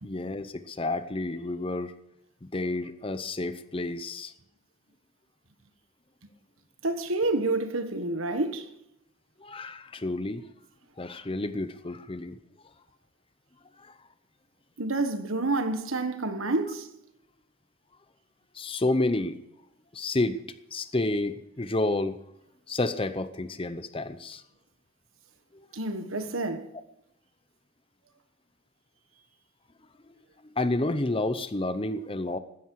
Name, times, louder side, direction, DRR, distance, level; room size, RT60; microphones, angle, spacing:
voice 1, 0.0-1.9 2.5-4.3 9.4-10.4 11.0-12.4 13.8-13.9 18.6-19.4 19.9-20.4 20.7-22.2 22.7-24.4 30.6-32.4, left 2 dB, 25° left, 0.7 m, -30 dB
voice 2, 6.8-8.7 14.8-16.9 25.7-26.7, right 2 dB, 70° right, 1.5 m, -28 dB
15.5 x 13.0 x 4.8 m
head